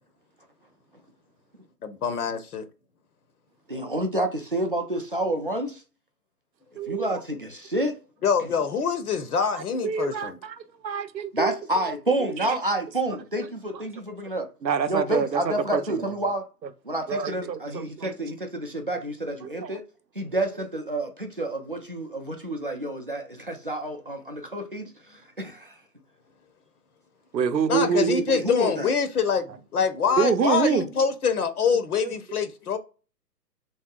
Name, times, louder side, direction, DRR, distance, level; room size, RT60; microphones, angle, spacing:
voice 1, 1.8-2.6 8.2-10.4 27.7-32.8, left 6 dB, 60° left, 0.6 m, -25 dB
voice 2, 3.7-5.8 6.9-8.0 11.3-14.5 14.9-16.4 16.8-19.8 20.2-25.8 27.7-27.9 28.2-28.9, right 1 dB, 35° right, 0.4 m, -29 dB
voice 3, 6.8-7.1 9.5-11.9 12.2-12.5 13.1-13.2 14.6-15.8 17.1-18.1 19.4-19.8 27.3-28.2 30.2-30.9 31.7-32.2, right 6 dB, 85° right, 0.7 m, -27 dB
3.1 x 2.7 x 2.3 m
figure-of-eight pair, 145°, 50 cm